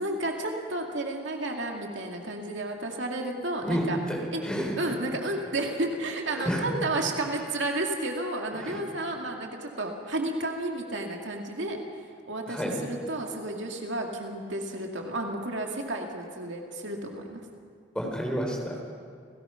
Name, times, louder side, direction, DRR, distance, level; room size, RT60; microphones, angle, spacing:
voice 1, 0.0-4.0 4.3-4.4 4.8-11.8 12.3-17.4, right 2 dB, 70° right, 2 dB, 2.4 m, -32 dB
voice 2, 3.6-4.9 6.4-6.6 8.6-8.8 12.5-12.8 17.9-18.7, equal, 5° left, 0 dB, 3.8 m, -30 dB
30.0 x 17.5 x 5.9 m, 2.2 s
head